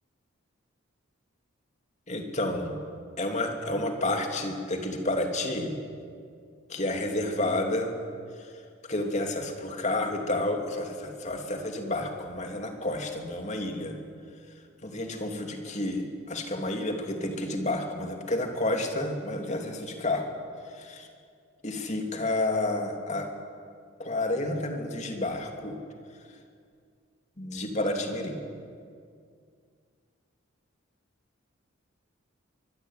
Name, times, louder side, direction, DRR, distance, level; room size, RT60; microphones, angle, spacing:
voice 1, 2.1-2.8 3.2-5.8 6.7-7.9 8.9-14.0 14.8-20.3 20.7-21.1 21.6-23.3 24.0-25.8 27.4-28.4, left 1 dB, 35° left, 4 dB, 3.0 m, -30 dB
24.5 x 21.5 x 9.3 m, 2.2 s
head